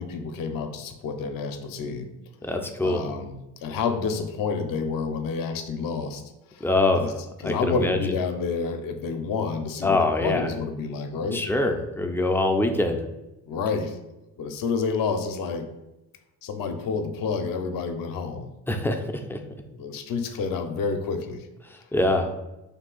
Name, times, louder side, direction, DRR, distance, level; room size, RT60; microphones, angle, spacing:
voice 1, 0.0-2.1 2.4-2.6 2.8-6.2 6.5-6.7 7.0-7.1 7.4-11.4 13.4-14.0 14.4-15.7 16.4-18.5 19.7-21.5, left 5 dB, 50° left, 7 dB, 0.6 m, -29 dB
voice 2, 2.4-3.0 6.6-7.0 7.4-8.1 9.8-10.5 11.3-13.0 18.7-19.0 19.3-19.4 21.9-22.3, left 2 dB, 5° left, 4 dB, 0.4 m, -23 dB
2.7 x 2.3 x 3.8 m, 0.98 s
supercardioid pair, 55°, 43 cm